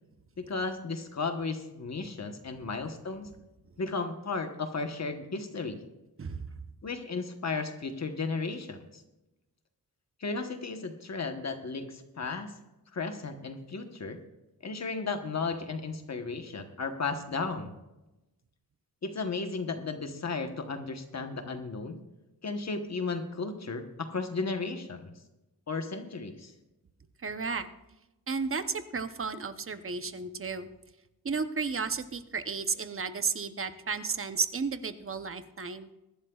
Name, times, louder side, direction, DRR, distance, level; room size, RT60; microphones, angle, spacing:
voice 1, 0.4-3.3 3.8-5.8 6.8-9.0 10.2-12.5 12.9-14.2 14.6-17.7 19.0-22.0 22.4-25.1 25.7-26.5, left 4 dB, 45° left, 6 dB, 1.1 m, -34 dB
voice 2, 6.2-6.6 27.2-27.7 28.3-30.7 31.2-35.9, right 5 dB, 35° right, 10 dB, 0.7 m, -33 dB
22.5 x 11.5 x 2.4 m, 0.98 s
wide cardioid pair, 160°, 36 cm